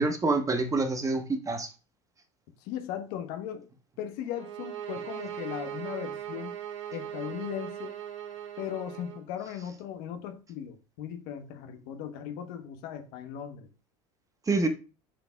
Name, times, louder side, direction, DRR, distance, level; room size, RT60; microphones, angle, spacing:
voice 1, 0.0-1.7 14.5-14.7, right 3 dB, 20° right, 1.1 m, -26 dB
voice 2, 2.6-3.7 4.0-6.5 6.9-7.9 8.6-13.7, left 10 dB, 65° left, 1.0 m, -38 dB
sound 1, 4.3-9.2, right 10 dB, 85° right, 0.7 m, -39 dB
10.5 x 4.1 x 2.2 m
hypercardioid pair, 85°, 15 cm